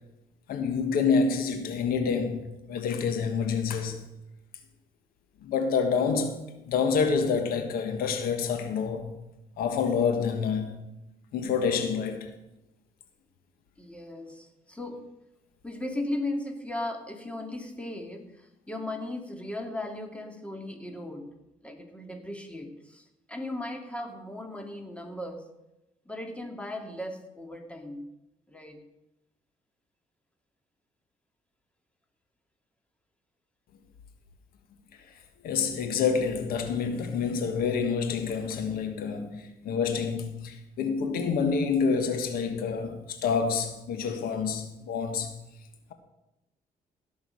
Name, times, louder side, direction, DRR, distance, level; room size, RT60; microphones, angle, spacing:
voice 1, 0.5-4.0 5.4-9.1 9.6-10.8 11.3-12.3 35.4-45.3, left 5 dB, 85° left, 1.5 m, -27 dB
voice 2, 13.8-15.1 15.6-18.3 18.7-21.3 21.6-25.5 26.1-28.1 28.5-28.9, left 1 dB, 10° left, 2.2 m, -37 dB
17.0 x 6.4 x 6.4 m
cardioid pair, 75°, 15 cm